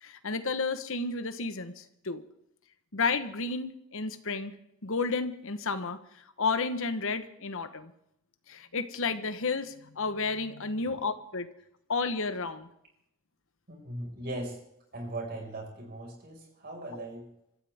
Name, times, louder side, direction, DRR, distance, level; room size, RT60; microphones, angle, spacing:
voice 1, 0.0-2.2 2.9-4.5 4.8-6.0 6.4-7.9 8.5-11.5 11.9-12.7 16.9-17.0, left 4 dB, 65° left, 10 dB, 1.2 m, -32 dB
voice 2, 13.7-14.6 14.9-17.3, right 1 dB, 45° right, 1 dB, 5.6 m, -39 dB
26.5 x 14.0 x 3.6 m, 0.79 s
head